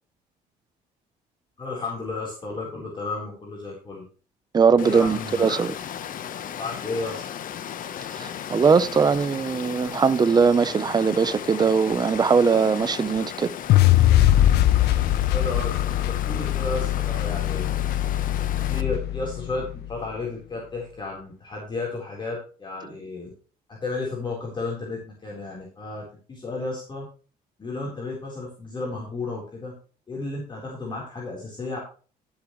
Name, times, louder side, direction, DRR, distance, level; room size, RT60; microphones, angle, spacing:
voice 1, 1.6-4.0 4.8-5.6 6.5-7.3 9.1-9.2 14.3-14.4 15.3-17.7 18.7-23.3 23.7-27.1 27.6-29.7 30.1-31.8, left 3 dB, 25° left, 4.1 m, -33 dB
voice 2, 4.5-5.7 8.1-13.5, right 5 dB, 25° right, 0.7 m, -20 dB
Water, 4.8-18.8, left 9 dB, 55° left, 1.0 m, -36 dB
sound 1, 13.7-19.9, left 13 dB, 75° left, 0.6 m, -21 dB
16.5 x 7.3 x 3.2 m
cardioid pair, 110°, 17 cm